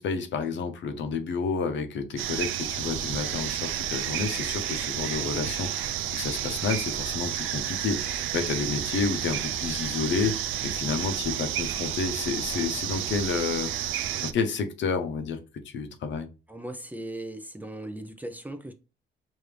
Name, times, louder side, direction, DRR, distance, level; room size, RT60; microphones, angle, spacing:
voice 1, 0.0-13.7 14.2-15.4 15.6-16.3, left 5 dB, 70° left, 0.8 m, -30 dB
sound 1, 2.2-14.3, right 11 dB, 85° right, 0.5 m, -31 dB
voice 2, 16.5-18.7, right 1 dB, 10° right, 0.6 m, -38 dB
5.1 x 2.7 x 3.3 m
cardioid pair, 90°, 20 cm